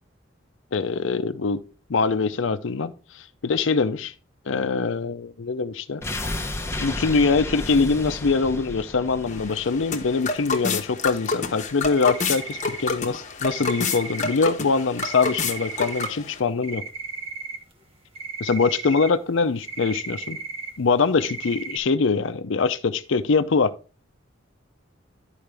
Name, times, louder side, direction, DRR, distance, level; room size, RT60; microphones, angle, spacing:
voice 1, 0.7-1.6 1.9-4.1 4.5-6.0 6.8-16.8 18.4-20.4 20.8-23.7, left 4 dB, 70° left, 0.5 m, -23 dB
sound 1, 6.0-11.0 11.3-11.4, left 1 dB, 15° left, 0.8 m, -33 dB
sound 2, 9.3-16.4, left 4 dB, 40° left, 1.0 m, -29 dB
sound 3, 11.9-13.2 13.5-14.4 15.0-16.1 16.5-17.9 18.2-19.1 19.6-20.8 21.2-21.8, right 4 dB, 30° right, 1.2 m, -35 dB
12.0 x 4.9 x 3.4 m
head